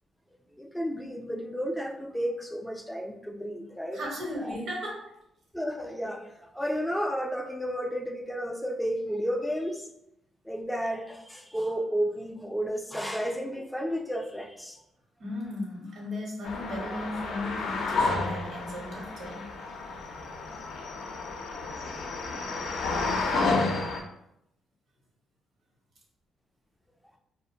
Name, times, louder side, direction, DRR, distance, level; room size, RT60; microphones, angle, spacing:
voice 1, 0.5-4.0 4.4-4.6 5.5-9.9 10.4-14.8, equal, 5° left, 3 dB, 0.3 m, -32 dB
voice 2, 3.9-5.1 15.2-19.5, left 1 dB, 70° right, -2 dB, 1.0 m, -36 dB
sound 1, 16.4-24.0, left 3 dB, 75° left, 0.4 m, -31 dB
2.3 x 2.1 x 2.7 m, 0.79 s
cardioid pair, 90°, 0 cm